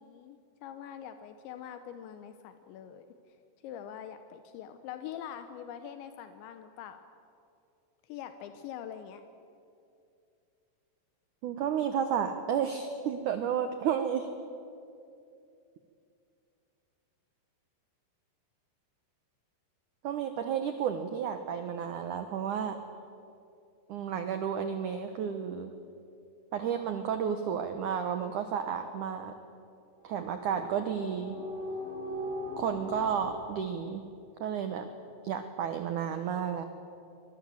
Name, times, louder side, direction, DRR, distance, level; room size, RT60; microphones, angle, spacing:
voice 1, 0.0-3.1 3.6-7.0 8.0-9.2, left 9 dB, 85° left, 8 dB, 3.2 m, -44 dB
voice 2, 11.4-14.3 20.0-22.8 23.9-25.7 26.5-29.3 30.0-31.4 32.6-34.0 34.4-34.9 35.2-36.6, right 8 dB, 85° right, 8 dB, 1.7 m, -32 dB
sound 1, 30.0-33.3, left 1 dB, 65° left, 5.4 m, -39 dB
25.0 x 23.0 x 7.7 m, 2.6 s
omnidirectional pair, 5.2 m